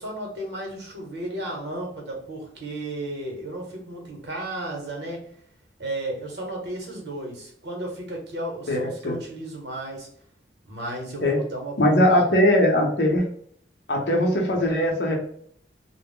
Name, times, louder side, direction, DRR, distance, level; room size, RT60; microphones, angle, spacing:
voice 1, 0.0-5.2 5.8-10.1 10.6-12.3, right 1 dB, 70° right, 0 dB, 0.9 m, -34 dB
voice 2, 8.7-9.2 11.2-11.4 11.8-13.3 13.9-15.1, left 1 dB, 70° left, 0 dB, 0.7 m, -20 dB
2.2 x 2.0 x 3.5 m, 0.63 s
head